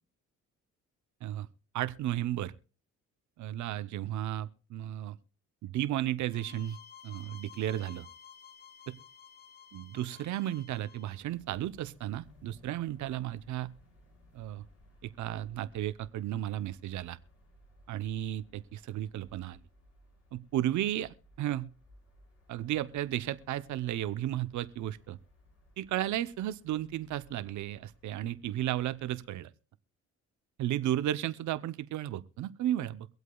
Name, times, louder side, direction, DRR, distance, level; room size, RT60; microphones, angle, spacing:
voice 1, 1.7-2.5 3.4-5.2 5.6-6.8 7.0-8.1 9.7-13.7 14.3-14.6 15.0-17.2 17.9-19.6 20.3-21.6 22.5-25.2 25.8-29.5 30.6-33.1, right 13 dB, 75° right, 0.7 m, -34 dB
sound 1, 6.3-11.2, left 8 dB, 30° left, 0.7 m, -53 dB
sound 2, 11.1-29.4, left 1 dB, 55° left, 5.2 m, -61 dB
24.0 x 8.1 x 2.3 m
cardioid pair, 90°, 30 cm